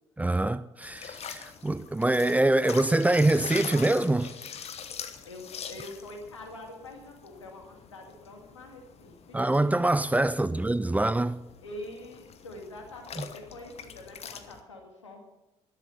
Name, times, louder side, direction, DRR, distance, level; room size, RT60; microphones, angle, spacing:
voice 1, 0.2-4.3 9.3-11.4, right 2 dB, 10° right, 0.5 m, -24 dB
sound 1, 0.8-14.6, left 7 dB, 45° left, 1.2 m, -44 dB
voice 2, 5.2-9.4 11.6-15.2, left 1 dB, 85° left, 2.2 m, -45 dB
13.5 x 12.0 x 5.7 m
figure-of-eight pair, 50°, 15 cm